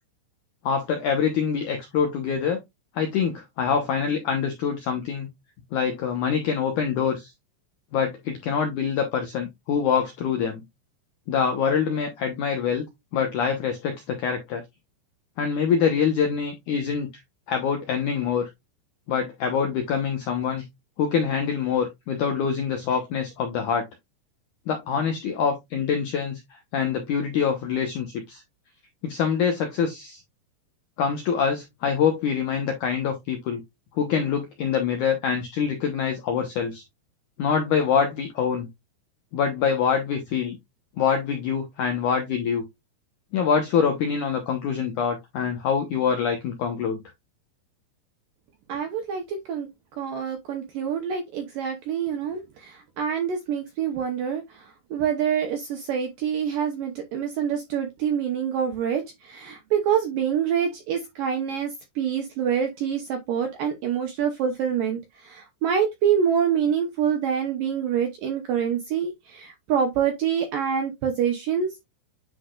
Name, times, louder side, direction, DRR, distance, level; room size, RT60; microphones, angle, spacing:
voice 1, 0.6-2.6 3.0-5.3 5.7-7.3 7.9-10.6 11.3-12.8 13.1-14.6 15.4-17.1 17.5-18.4 19.1-20.6 21.0-23.8 24.7-28.4 29.0-30.2 31.0-33.6 34.0-36.8 37.4-38.7 39.3-40.6 41.0-42.6 43.3-47.0, left 7 dB, 80° left, 1.8 m, -25 dB
voice 2, 48.7-49.7 50.0-71.8, right 8 dB, 75° right, 2.0 m, -26 dB
9.8 x 4.2 x 2.4 m
omnidirectional pair, 5.1 m